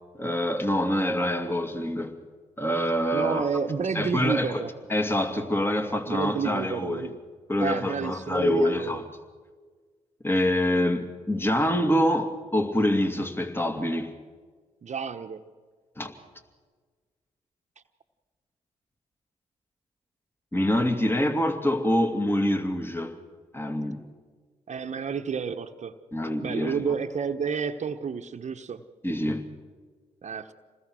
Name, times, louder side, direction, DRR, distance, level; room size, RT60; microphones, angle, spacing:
voice 1, 0.2-2.2 2.6-3.5 3.9-4.6 4.9-7.1 7.5-9.0 10.2-14.2 16.0-16.1 20.5-23.2 23.5-24.1 26.1-26.9 29.0-29.5, left 1 dB, 15° left, 2.6 m, -26 dB
voice 2, 3.1-4.7 6.1-7.2 7.6-9.0 14.8-15.4 24.7-25.9 26.4-28.8 30.2-30.5, right 6 dB, 50° right, 1.2 m, -30 dB
27.0 x 20.5 x 6.3 m
hypercardioid pair, 45°, 15 cm